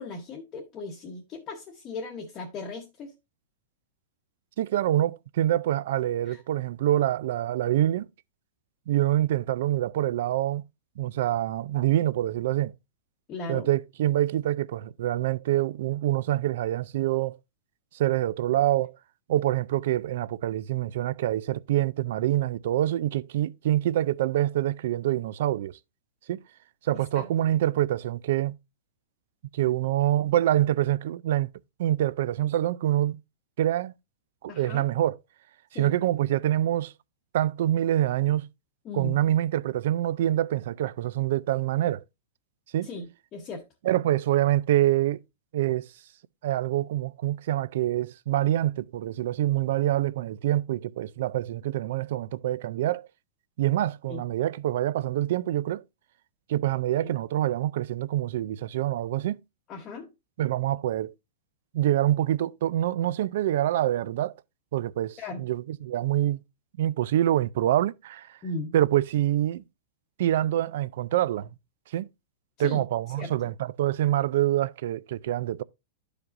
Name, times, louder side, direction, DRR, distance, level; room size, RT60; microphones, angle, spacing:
voice 1, 0.0-3.1 6.3-6.4 13.3-13.7 27.1-27.3 34.5-34.8 35.7-35.9 38.8-39.2 42.8-43.6 54.1-54.2 57.0-57.1 59.7-60.1 65.2-65.4 68.4-68.7 72.6-73.5, left 3 dB, 20° left, 0.9 m, -37 dB
voice 2, 4.6-8.1 8.9-10.6 11.0-12.7 13.5-17.4 17.9-19.0 19.3-25.8 26.3-26.4 26.8-28.5 29.5-31.5 31.8-33.2 33.6-33.9 34.4-35.2 35.7-36.9 37.3-38.5 38.9-42.0 42.7-42.9 43.8-45.2 45.5-45.9 46.4-53.1 53.6-55.8 56.5-59.4 60.4-61.1 61.7-64.3 64.7-66.4 66.8-68.3 68.7-69.6 70.2-71.5 71.9-72.1 72.6-75.6, right 13 dB, 55° right, 0.4 m, -26 dB
12.0 x 4.9 x 2.5 m
supercardioid pair, 175°, 0 cm